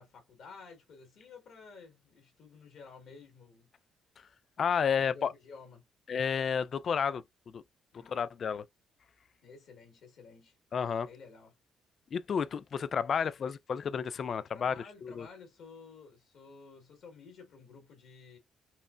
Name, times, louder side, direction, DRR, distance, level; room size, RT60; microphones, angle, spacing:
voice 1, 0.0-3.7 5.0-5.9 7.9-8.2 9.4-10.6 11.1-11.5 14.5-18.4, left 4 dB, 70° left, 1.7 m, -52 dB
voice 2, 4.6-5.3 6.1-7.6 8.1-8.6 10.7-11.1 12.1-14.7 15.0-15.3, left 7 dB, 50° left, 0.4 m, -31 dB
5.5 x 2.1 x 2.5 m
cardioid pair, 90°, 0 cm